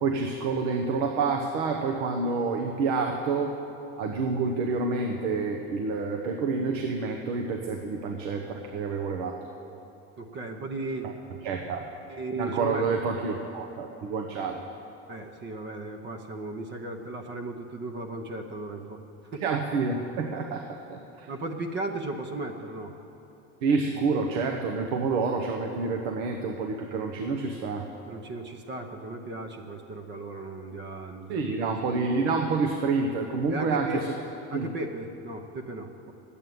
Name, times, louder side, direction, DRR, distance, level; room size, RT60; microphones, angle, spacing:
voice 1, 0.0-3.5 4.0-9.4 11.0-11.1 11.4-11.9 12.4-14.6 19.4-21.3 23.6-27.9 31.3-34.1 34.5-34.7, right 4 dB, 80° right, 3 dB, 1.1 m, -28 dB
voice 2, 10.2-11.1 12.1-12.8 13.1-13.2 15.1-19.0 19.2-19.4 21.3-22.9 28.1-32.0 33.5-34.1 34.5-36.1, right 2 dB, 35° right, 4 dB, 0.9 m, -36 dB
10.5 x 8.6 x 9.4 m, 2.9 s
cardioid pair, 140°, 33 cm